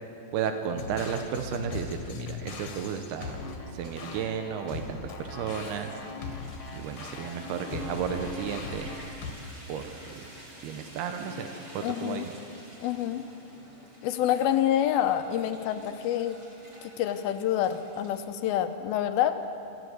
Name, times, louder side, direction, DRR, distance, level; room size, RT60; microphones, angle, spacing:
voice 1, 0.3-3.4 3.7-5.9 6.7-8.9 9.7-10.2 10.6-12.3, right 7 dB, 90° right, 7 dB, 3.0 m, -33 dB
sound 1, 0.8-9.3, left 4 dB, 50° left, 2.7 m, -40 dB
sound 2, 3.2-18.2, left 1 dB, 30° right, 5.0 m, -47 dB
voice 2, 11.8-12.2 12.8-13.2 14.0-16.4 16.8-19.4, left 11 dB, 80° left, 9 dB, 2.7 m, -27 dB
26.5 x 14.5 x 7.9 m, 2.6 s
omnidirectional pair, 4.4 m